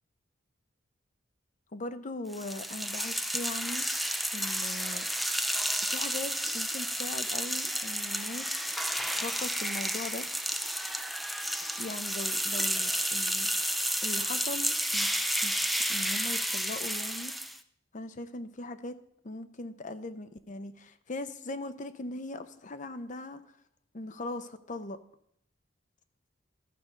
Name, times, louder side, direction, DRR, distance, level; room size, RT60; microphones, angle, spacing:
voice 1, 1.7-3.9 4.3-5.1 5.9-8.5 9.1-10.3 11.8-13.5 14.0-15.6 15.9-17.3 17.9-19.0 19.2-23.4 23.9-25.0, left 2 dB, 40° left, 11 dB, 0.7 m, -40 dB
sound 1, 2.3-17.6, equal, ahead, 0.4 m, -31 dB
13.0 x 5.2 x 6.1 m, 0.70 s
head